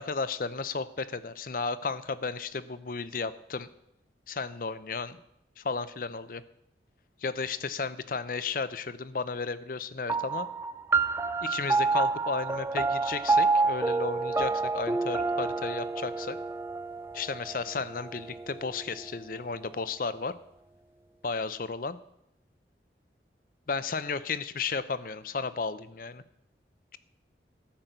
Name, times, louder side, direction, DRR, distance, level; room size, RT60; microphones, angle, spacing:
voice 1, 0.0-3.7 4.3-5.2 5.6-6.4 7.2-10.5 11.4-16.4 17.1-20.4 21.2-22.0 23.7-26.2, left 4 dB, 50° left, 14 dB, 0.6 m, -33 dB
sound 1, 10.1-18.9, right 3 dB, 15° right, 0.3 m, -28 dB
13.0 x 5.9 x 7.9 m, 0.79 s
head